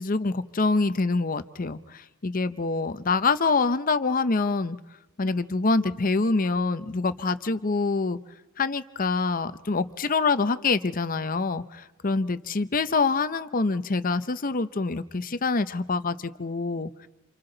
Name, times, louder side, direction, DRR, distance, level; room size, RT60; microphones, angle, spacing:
voice 1, 0.0-4.8 5.2-8.2 8.6-16.9, left 3 dB, 40° left, 12 dB, 0.7 m, -25 dB
28.5 x 28.0 x 3.9 m, 0.97 s
head